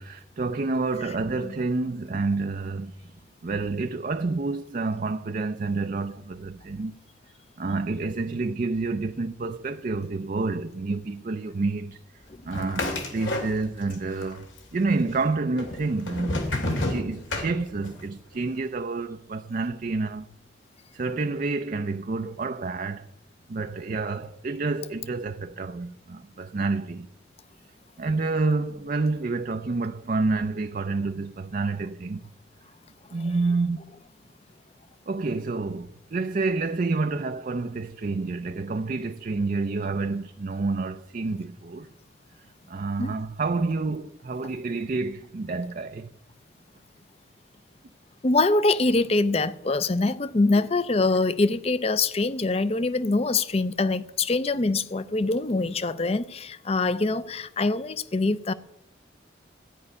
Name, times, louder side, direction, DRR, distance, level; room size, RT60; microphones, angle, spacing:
voice 1, 0.0-3.1 3.4-6.9 7.6-20.3 20.9-23.1 23.5-27.1 28.0-32.3 33.1-33.9 35.1-41.9 42.7-46.1 50.5-50.6, right 3 dB, 45° right, 0.4 m, -29 dB
sound 1, 12.5-14.0 14.2-15.0 15.6-18.1, left 1 dB, 85° left, 2.6 m, -30 dB
voice 2, 48.2-58.5, left 3 dB, 30° left, 0.5 m, -24 dB
15.0 x 5.4 x 9.8 m
head